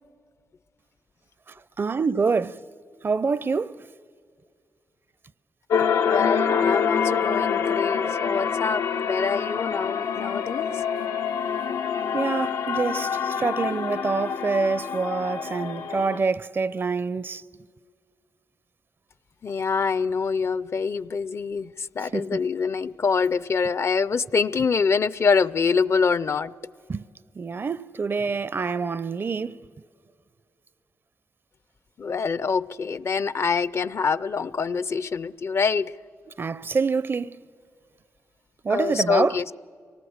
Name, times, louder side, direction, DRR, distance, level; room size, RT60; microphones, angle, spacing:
voice 1, 1.8-2.6 3.0-3.8 12.1-17.4 22.1-22.4 26.9-27.0 27.4-29.6 36.4-37.4 38.6-39.4, right 4 dB, 40° right, 0.5 m, -26 dB
sound 1, 5.7-16.2, left 7 dB, 85° left, 0.7 m, -26 dB
voice 2, 6.1-10.7 19.4-26.5 32.0-35.9 38.7-39.5, left 5 dB, 50° left, 0.5 m, -25 dB
24.5 x 18.5 x 7.9 m
cardioid pair, 65°, 6 cm